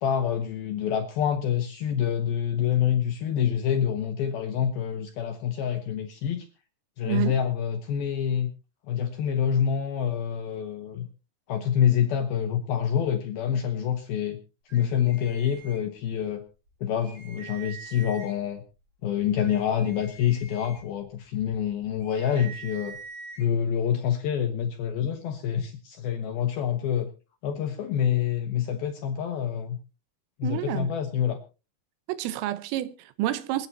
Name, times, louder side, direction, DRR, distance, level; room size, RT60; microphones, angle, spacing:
voice 1, 0.0-6.5 7.0-8.5 8.9-11.1 11.5-14.4 14.7-16.4 16.8-18.6 19.0-23.0 23.4-27.1 27.4-29.8 30.4-31.4, left 9 dB, 75° left, 2.3 m, -27 dB
voice 2, 7.1-7.4 30.4-30.9 32.1-33.7, right 14 dB, 90° right, 3.6 m, -29 dB
sound 1, 14.7-16.3 16.7-16.8 17.0-18.6 19.1-23.5, right 5 dB, 45° right, 4.2 m, -45 dB
26.5 x 9.4 x 2.8 m
omnidirectional pair, 5.7 m